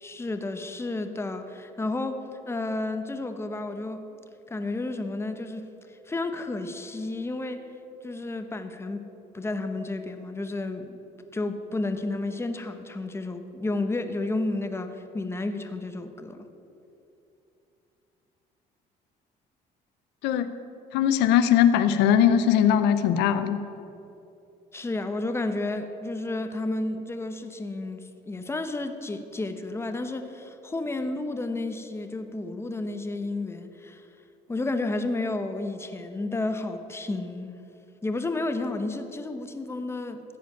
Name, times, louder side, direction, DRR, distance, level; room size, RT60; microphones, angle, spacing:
voice 1, 0.0-4.1 4.5-7.6 8.0-9.0 9.3-11.0 11.3-16.5 24.7-34.0 34.5-37.5 38.0-40.2, left 2 dB, 15° left, 7 dB, 0.9 m, -31 dB
voice 2, 20.9-23.6, left 9 dB, 90° left, 10 dB, 0.7 m, -20 dB
15.0 x 5.1 x 9.2 m, 2.8 s
cardioid pair, 110°, 17 cm